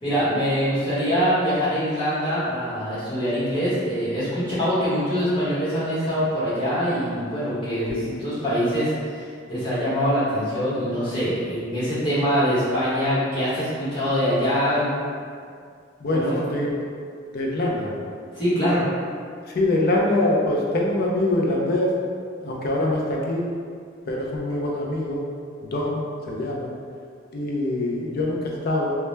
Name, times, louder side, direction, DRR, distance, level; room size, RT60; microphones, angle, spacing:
voice 1, 0.0-15.0 16.1-16.4 18.3-18.8, equal, 25° left, -13 dB, 1.0 m, -24 dB
voice 2, 16.0-16.8 17.3-17.9 19.5-21.9 22.4-23.4 24.1-25.2 25.6-26.7 27.3-28.9, left 1 dB, 50° left, -2 dB, 0.4 m, -24 dB
2.2 x 2.1 x 3.1 m, 2.2 s
head